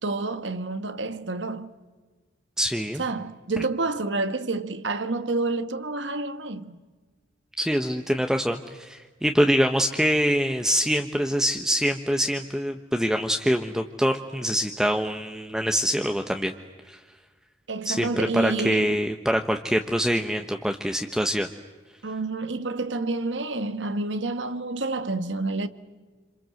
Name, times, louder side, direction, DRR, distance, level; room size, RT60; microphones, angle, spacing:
voice 1, 0.0-1.7 3.0-6.8 17.7-19.0 22.0-25.7, right 3 dB, 80° right, 1.5 m, -29 dB
voice 2, 2.6-3.0 7.6-16.5 16.9-17.0 17.8-21.5, equal, 5° right, 1.0 m, -24 dB
27.5 x 27.0 x 7.8 m
head